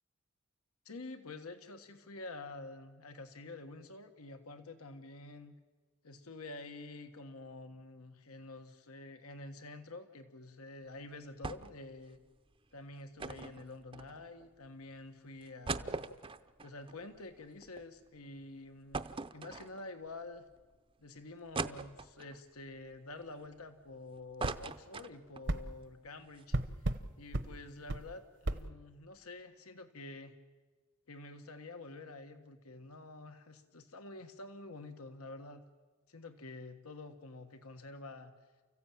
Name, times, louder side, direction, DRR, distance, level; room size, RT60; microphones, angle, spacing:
voice 1, 0.8-5.5 6.0-12.2 12.7-16.1 16.6-20.4 21.0-30.3 31.1-35.6 36.1-38.3, left 2 dB, 90° left, 8 dB, 1.5 m, -48 dB
sound 1, 11.4-11.9 12.1-12.2 13.2-14.5 15.0-15.1 15.4-17.8 18.2-18.3 18.9-20.1 20.6-20.7 21.5-22.4 22.9-23.9 24.2-25.5 25.9-26.0 26.2-26.4, right 4 dB, 25° right, 0.6 m, -41 dB
sound 2, 24.4-24.6 25.5-25.6 26.5-27.0 27.3-27.5 27.9-28.0 28.4-28.6, right 1 dB, 55° right, 1.0 m, -33 dB
29.5 x 15.5 x 9.0 m, 1.3 s
head